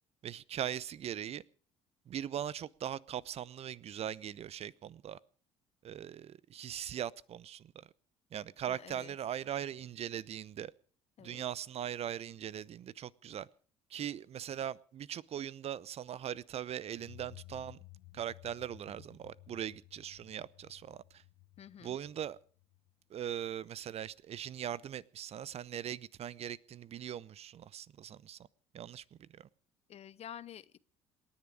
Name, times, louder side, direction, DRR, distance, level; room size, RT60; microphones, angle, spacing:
voice 1, 0.2-1.4 2.1-5.2 5.8-7.9 8.3-10.7 11.2-13.5 13.9-17.8 18.1-21.2 21.8-22.4 23.1-28.4 28.7-29.5, right 10 dB, 40° right, 0.8 m, -40 dB
voice 2, 8.7-9.1 11.2-11.4 21.6-22.0 29.9-30.8, left 10 dB, 40° left, 0.8 m, -49 dB
sound 1, 16.9-23.5, left 20 dB, 60° left, 1.1 m, -57 dB
27.5 x 10.5 x 4.9 m
figure-of-eight pair, 55°, 16 cm